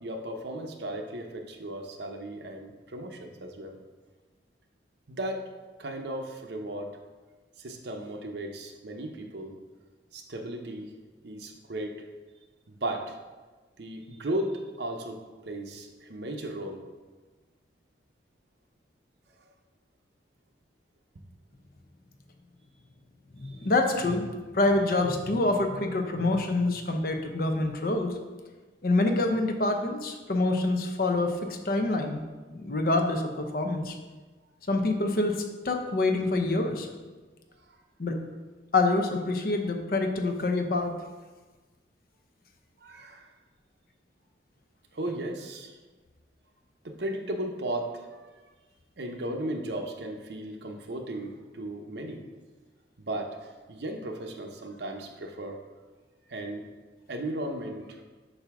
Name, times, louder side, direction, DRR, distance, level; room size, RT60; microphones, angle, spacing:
voice 1, 0.0-3.8 5.1-5.5 5.8-6.9 7.6-9.6 10.1-10.9 11.2-12.0 12.7-13.2 13.8-15.2 15.4-16.8 23.6-23.7 37.6-37.8 42.8-43.3 44.9-45.7 46.8-48.2 49.0-52.3 53.0-55.6 56.3-56.6 57.1-58.0, right 1 dB, 65° right, 3 dB, 0.7 m, -36 dB
voice 2, 23.4-28.1 28.8-32.2 32.5-34.0 34.7-35.4 35.6-36.9 38.0-38.2 38.7-40.9, left 2 dB, 50° left, 4 dB, 0.7 m, -26 dB
8.2 x 2.7 x 5.9 m, 1.3 s
head